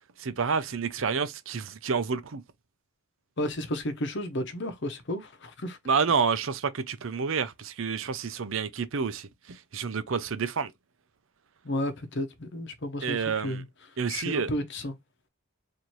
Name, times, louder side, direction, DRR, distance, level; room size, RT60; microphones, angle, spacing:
voice 1, 0.2-2.4 5.9-10.7 13.0-13.6 14.0-14.5, right 5 dB, 65° right, 0.6 m, -29 dB
voice 2, 3.4-5.8 11.6-13.6 14.1-15.0, left 1 dB, 55° left, 0.9 m, -32 dB
4.3 x 2.7 x 3.1 m
head